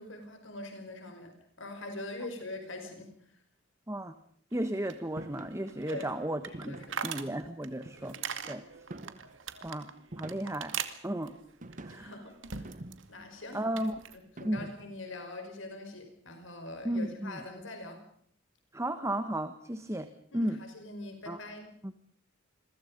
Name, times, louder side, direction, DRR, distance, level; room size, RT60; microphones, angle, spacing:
voice 1, 0.0-3.1 5.9-6.1 6.6-7.1 11.9-12.8 13.1-13.6 14.4-18.0 20.3-21.7, left 2 dB, 80° left, 5 dB, 5.3 m, -43 dB
voice 2, 4.5-6.8 7.0-8.2 8.5-8.6 9.6-9.9 10.2-10.8 11.0-11.3 11.8-12.1 13.5-13.9 14.4-14.7 16.8-17.4 18.7-20.6 21.3-21.4 21.8-21.9, right 1 dB, 15° right, 10 dB, 1.3 m, -34 dB
sound 1, 4.5-13.1 13.3-14.2, right 7 dB, 75° right, 2.2 m, -42 dB
sound 2, 5.2-5.6 6.5-7.0 7.9-8.4 8.9-9.4 10.1-10.7 11.6-12.1 12.6-13.3 14.4-15.0, right 1 dB, 45° right, 1.2 m, -46 dB
28.5 x 23.0 x 5.3 m, 0.63 s
head